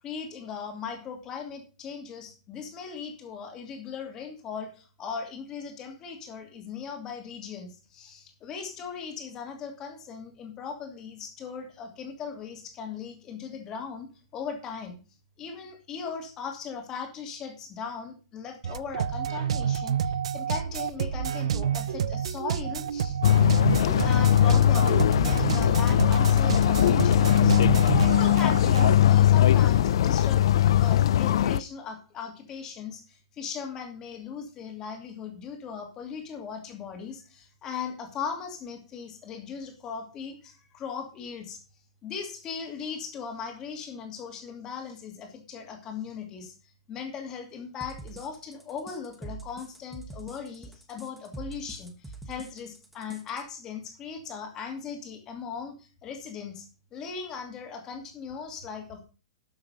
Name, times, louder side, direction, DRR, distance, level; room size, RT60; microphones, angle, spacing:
voice 1, 0.0-14.1 14.3-15.0 15.4-23.2 23.8-30.4 30.8-41.6 42.0-46.5 46.9-56.7 56.9-59.0, left 6 dB, 15° left, 4 dB, 2.6 m, -38 dB
sound 1, 18.6-28.9, right 8 dB, 90° right, 0.6 m, -29 dB
sound 2, 23.2-31.6, left 11 dB, 60° left, 0.5 m, -20 dB
sound 3, 47.8-53.4, right 3 dB, 5° right, 1.2 m, -43 dB
12.5 x 7.0 x 5.3 m, 0.34 s
supercardioid pair, 180°, 3 cm